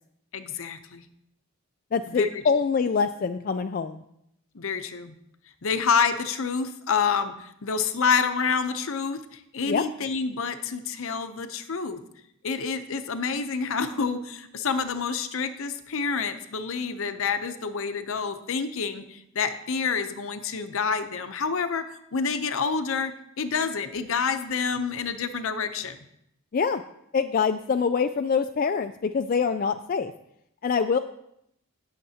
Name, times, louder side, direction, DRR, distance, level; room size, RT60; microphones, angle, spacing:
voice 1, 0.3-1.1 2.1-2.4 4.5-5.1 5.6-12.0 12.4-21.8 22.1-26.0, left 5 dB, 65° left, 9 dB, 0.6 m, -28 dB
voice 2, 1.9-4.0 9.7-9.8 26.5-26.8 27.1-30.1 30.6-31.0, left 5 dB, 40° left, 7 dB, 0.3 m, -25 dB
18.0 x 6.6 x 2.8 m, 0.77 s
head